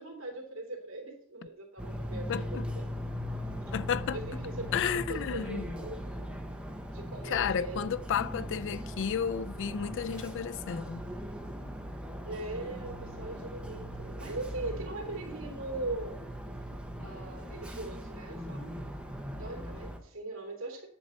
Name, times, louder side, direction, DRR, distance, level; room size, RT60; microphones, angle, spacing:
voice 1, 0.0-2.9 3.7-3.8 4.1-4.8 5.1-6.3 6.9-7.9 12.2-16.3 17.0-18.8 19.4-20.9, right 2 dB, 65° right, 2.8 m, -40 dB
sound 1, 1.8-20.0, equal, 5° right, 0.9 m, -39 dB
voice 2, 2.3-2.7 3.7-4.2 4.7-5.6 7.2-11.0, left 7 dB, 60° left, 0.4 m, -32 dB
9.7 x 6.8 x 4.1 m
head